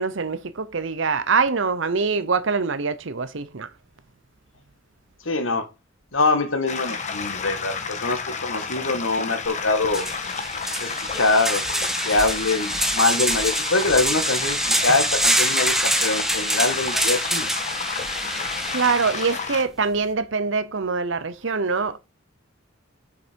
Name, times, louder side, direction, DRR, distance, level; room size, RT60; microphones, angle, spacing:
voice 1, 0.0-3.7 18.7-22.0, right 4 dB, 65° right, 0.8 m, -24 dB
voice 2, 5.2-5.7 6.1-10.1 10.8-17.5, left 3 dB, 70° left, 1.8 m, -24 dB
sound 1, 6.7-19.6, left 5 dB, 35° left, 1.5 m, -31 dB
sound 2, 9.4-9.5 9.9-19.5, right 1 dB, ahead, 1.2 m, -25 dB
8.5 x 7.0 x 4.6 m
head